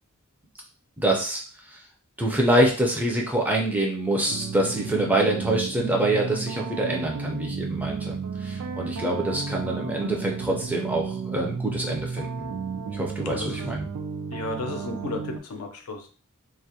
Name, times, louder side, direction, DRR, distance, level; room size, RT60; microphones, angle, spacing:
voice 1, 1.0-1.4 1.7-1.8 2.2-12.5 12.9-13.8, right 1 dB, 10° right, -1 dB, 0.4 m, -25 dB
sound 1, 4.3-15.4, right 5 dB, 85° right, 0.4 m, -33 dB
voice 2, 13.3-13.6 14.3-16.1, left 3 dB, 85° left, 5 dB, 0.5 m, -34 dB
2.3 x 2.1 x 2.7 m, 0.38 s
head